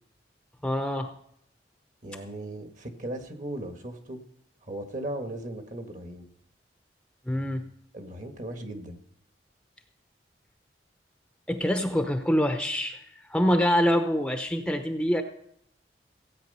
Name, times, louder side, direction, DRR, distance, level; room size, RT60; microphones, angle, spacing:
voice 1, 0.6-1.1 7.3-7.7 11.5-13.0 13.3-15.2, equal, 5° left, 6 dB, 0.7 m, -25 dB
voice 2, 2.0-4.2 4.6-6.3 7.9-9.0, right 1 dB, 45° right, 6 dB, 1.7 m, -37 dB
16.5 x 8.7 x 5.5 m, 0.72 s
head